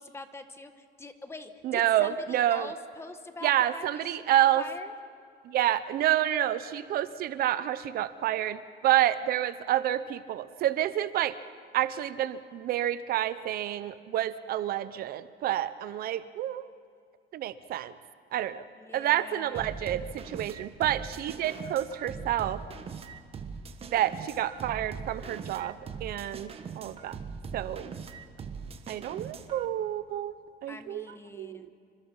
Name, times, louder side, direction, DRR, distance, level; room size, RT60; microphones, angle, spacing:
voice 1, 0.0-4.9 18.8-19.7 30.7-31.7, left 3 dB, 15° left, 8 dB, 1.4 m, -44 dB
voice 2, 1.6-2.7 3.4-4.6 5.5-11.3 11.7-16.6 17.3-17.9 18.3-18.6 18.9-22.6 23.9-27.2 27.5-27.9 28.9-30.3 30.6-31.1 31.3-31.7, right 12 dB, 60° right, 14 dB, 0.8 m, -28 dB
sound 1, 19.5-29.7, right 5 dB, 35° right, 1.4 m, -41 dB
28.5 x 25.0 x 5.6 m, 2.2 s
cardioid pair, 145°, 18 cm